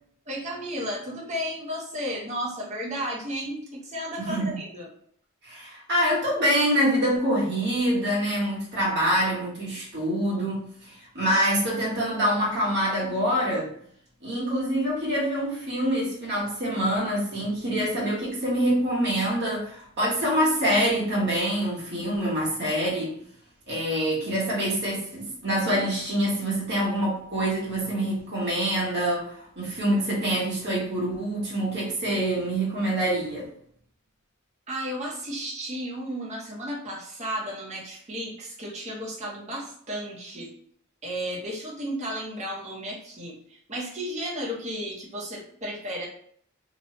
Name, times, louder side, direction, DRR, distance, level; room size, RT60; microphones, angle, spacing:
voice 1, 0.3-4.9 34.7-40.5 41.0-46.1, equal, 35° right, -3 dB, 0.8 m, -33 dB
voice 2, 4.2-4.6 5.4-13.7 14.2-23.1 23.7-33.4, equal, 55° right, -5 dB, 1.3 m, -25 dB
2.9 x 2.2 x 2.9 m, 0.62 s
head